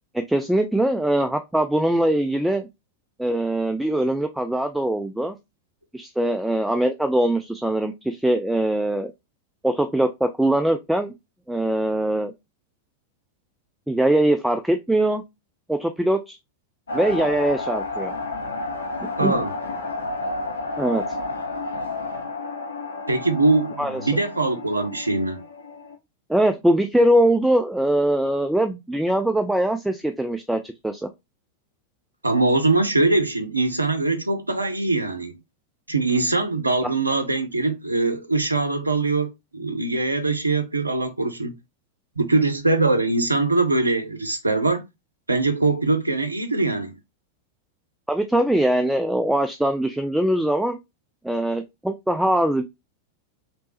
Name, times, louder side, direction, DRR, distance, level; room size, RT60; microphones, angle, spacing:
voice 1, 0.1-2.7 3.2-5.4 5.9-9.1 9.6-11.1 11.5-12.3 13.9-15.2 15.7-16.4 16.9-18.1 19.2-19.4 20.8-21.0 23.8-24.2 26.3-31.1 48.1-50.8 51.2-52.6, right 1 dB, 5° right, 0.3 m, -22 dB
sound 1, 16.9-26.0, left 2 dB, 70° left, 0.8 m, -31 dB
voice 2, 19.2-19.5 23.1-25.4 32.2-35.3 35.9-41.5 42.2-44.8 45.3-47.0, right 3 dB, 80° right, 0.5 m, -22 dB
3.2 x 2.9 x 2.9 m
figure-of-eight pair, 90°, 0 cm